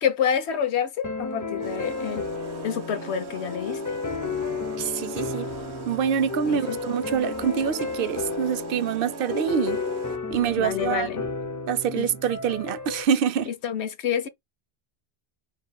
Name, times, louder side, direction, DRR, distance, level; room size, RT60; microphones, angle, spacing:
voice 1, 0.0-2.3 2.6-3.8 6.4-6.8 10.6-11.2 11.9-12.1 13.5-14.3, left 8 dB, 90° left, 1.1 m, -28 dB
sound 1, 1.0-13.0, left 4 dB, 25° left, 0.4 m, -32 dB
sound 2, 1.6-10.4, right 3 dB, 90° right, 1.1 m, -40 dB
voice 2, 4.8-5.5 5.9-9.8 10.3-11.1 11.7-13.5, right 8 dB, 65° right, 0.7 m, -26 dB
4.1 x 4.1 x 2.2 m
omnidirectional pair, 1.1 m